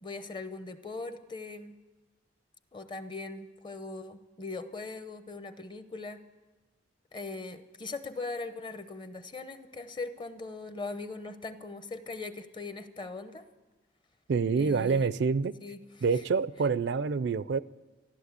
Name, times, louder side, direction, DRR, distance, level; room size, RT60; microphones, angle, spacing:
voice 1, 0.0-1.8 2.7-6.2 7.1-13.5 14.6-15.1 15.6-15.8, left 3 dB, 25° left, 11 dB, 0.8 m, -40 dB
voice 2, 14.3-15.5 16.0-17.6, right 5 dB, 65° right, 17 dB, 0.4 m, -27 dB
14.0 x 11.5 x 8.2 m, 1.2 s
head